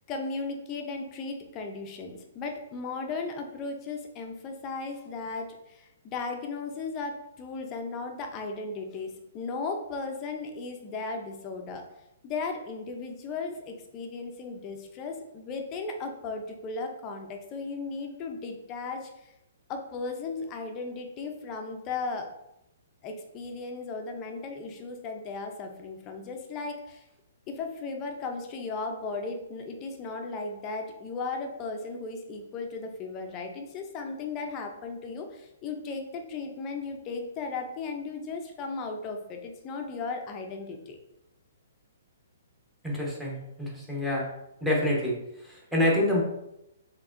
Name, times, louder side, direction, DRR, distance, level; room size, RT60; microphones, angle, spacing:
voice 1, 0.1-11.8 12.2-19.3 19.7-22.3 23.0-27.0 27.5-41.0, left 4 dB, 25° left, 3 dB, 0.5 m, -36 dB
voice 2, 42.8-44.3 44.6-46.2, left 1 dB, 5° right, -5 dB, 1.0 m, -27 dB
4.7 x 2.9 x 2.5 m, 0.86 s
hypercardioid pair, 155°, 0 cm